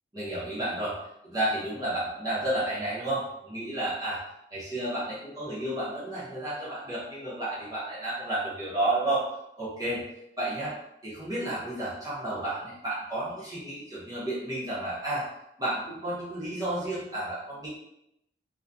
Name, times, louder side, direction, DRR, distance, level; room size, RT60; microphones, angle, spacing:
voice 1, 0.1-1.0 1.2-4.2 4.5-9.2 9.6-10.0 10.4-10.7 11.0-15.3 15.6-17.7, right 1 dB, 20° right, -10 dB, 0.7 m, -31 dB
2.5 x 2.2 x 2.2 m, 0.81 s
head